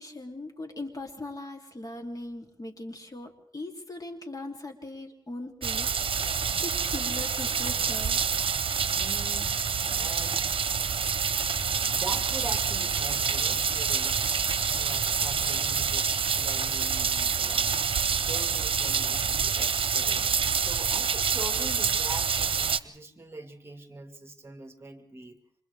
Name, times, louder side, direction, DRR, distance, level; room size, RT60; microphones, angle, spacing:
voice 1, 0.0-6.2 6.6-8.2, left 2 dB, 40° left, 3 dB, 3.0 m, -39 dB
sound 1, 5.6-22.8, right 6 dB, 80° right, 0.8 m, -27 dB
sound 2, 6.1-21.4, right 1 dB, ahead, 3.3 m, -47 dB
voice 2, 8.8-10.5 11.9-14.3 14.7-16.1 16.4-17.8 18.2-25.4, right 2 dB, 30° right, 5 dB, 2.1 m, -43 dB
29.5 x 26.5 x 3.5 m, 0.64 s
wide cardioid pair, 80°, 9 cm